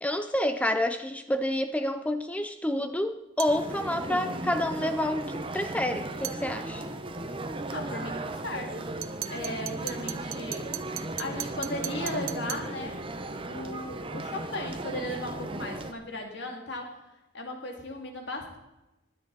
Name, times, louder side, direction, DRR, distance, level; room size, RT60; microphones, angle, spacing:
voice 1, 0.0-6.8, left 1 dB, 5° left, 8 dB, 0.4 m, -29 dB
sound 1, 3.4-3.6 6.2-6.4 9.0-12.7, right 13 dB, 85° right, 0.7 m, -38 dB
sound 2, 3.5-15.9, right 2 dB, 25° right, 0.8 m, -36 dB
voice 2, 7.7-8.9 9.3-13.0 13.4-17.0 17.3-18.6, left 1 dB, 60° left, 3 dB, 2.3 m, -37 dB
16.0 x 11.0 x 4.0 m, 0.97 s
head